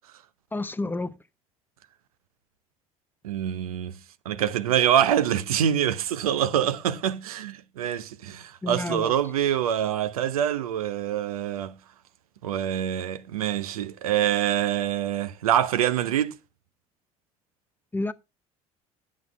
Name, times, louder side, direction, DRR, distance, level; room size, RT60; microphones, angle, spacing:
voice 1, 0.5-1.2 8.6-9.1 17.9-18.1, left 2 dB, 10° left, 0.6 m, -29 dB
voice 2, 3.2-3.9 4.3-11.7 12.4-16.3, right 10 dB, 80° right, 0.7 m, -25 dB
10.5 x 7.4 x 3.4 m
hypercardioid pair, 65°, 18 cm